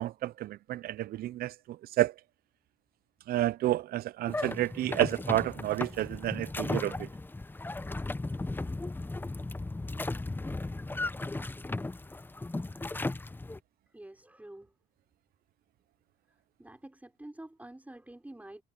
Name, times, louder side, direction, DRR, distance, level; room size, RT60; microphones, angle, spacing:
voice 1, 0.0-1.5 2.0-2.1 3.3-7.1, right 14 dB, 60° right, 0.4 m, -30 dB
sound 1, 4.3-13.6, left 2 dB, 10° left, 0.7 m, -36 dB
voice 2, 13.9-14.7 16.6-18.6, right 1 dB, 10° right, 4.9 m, -48 dB
cardioid pair, 85°, 18 cm